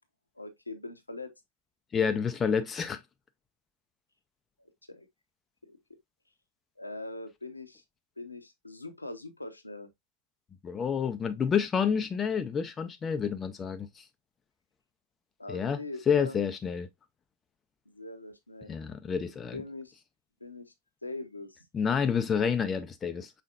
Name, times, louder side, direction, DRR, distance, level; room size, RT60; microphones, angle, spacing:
voice 1, 0.4-1.3 4.6-5.1 5.6-5.7 6.8-7.8 8.2-9.9 15.4-16.4 17.9-18.7 19.5-19.9 20.4-20.7 21.0-21.6, left 2 dB, 85° left, 0.8 m, -42 dB
voice 2, 1.9-3.0 10.6-14.0 15.5-15.8 16.1-16.9 18.7-19.6 21.7-23.3, left 6 dB, 20° left, 0.4 m, -29 dB
5.6 x 4.1 x 2.3 m
figure-of-eight pair, 90°, 0 cm